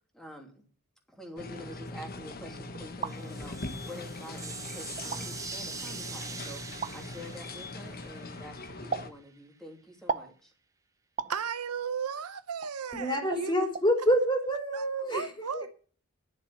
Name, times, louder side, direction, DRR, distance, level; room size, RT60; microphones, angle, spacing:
voice 1, 0.1-0.6 1.1-10.5, equal, ahead, 2.8 m, -47 dB
sound 1, 1.4-9.1, left 2 dB, 40° left, 1.3 m, -41 dB
sound 2, 2.7-3.2 4.1-4.2 5.0-5.2 6.8-7.0 8.9-9.1 10.1-10.3 11.2-11.4 12.6-12.7 13.3-13.5 13.7-13.9, right 5 dB, 35° right, 0.7 m, -34 dB
sound 3, 3.0-8.9, right 5 dB, 15° right, 1.0 m, -43 dB
voice 2, 11.3-13.5 15.1-15.7, right 6 dB, 85° right, 0.9 m, -34 dB
voice 3, 12.9-15.7, equal, 20° left, 3.6 m, -27 dB
11.0 x 6.9 x 9.5 m
head